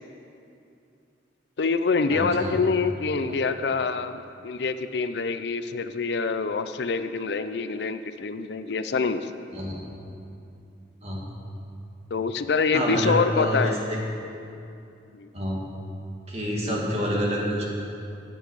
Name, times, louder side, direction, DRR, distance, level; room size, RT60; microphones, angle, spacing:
voice 1, 1.6-9.3 12.1-13.7 15.1-15.3, left 4 dB, 65° left, 10 dB, 0.5 m, -26 dB
voice 2, 2.1-2.6 9.5-9.8 11.0-11.2 12.7-14.0 14.2-14.4 15.3-15.6 16.3-17.6, equal, 35° right, -3 dB, 2.2 m, -27 dB
15.5 x 8.7 x 4.8 m, 2.6 s
head